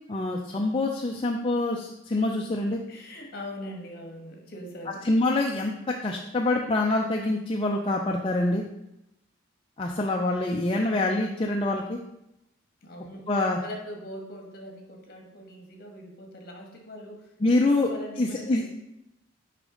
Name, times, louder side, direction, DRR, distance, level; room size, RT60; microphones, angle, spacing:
voice 1, 0.1-2.8 5.0-8.6 9.8-12.0 13.3-13.6 17.4-17.9 18.2-18.7, left 2 dB, 25° left, 0 dB, 0.4 m, -25 dB
voice 2, 2.9-5.0 12.8-13.2 13.6-17.3 17.6-18.7, left 1 dB, 50° left, 2 dB, 1.3 m, -41 dB
6.5 x 5.1 x 3.7 m, 0.85 s
head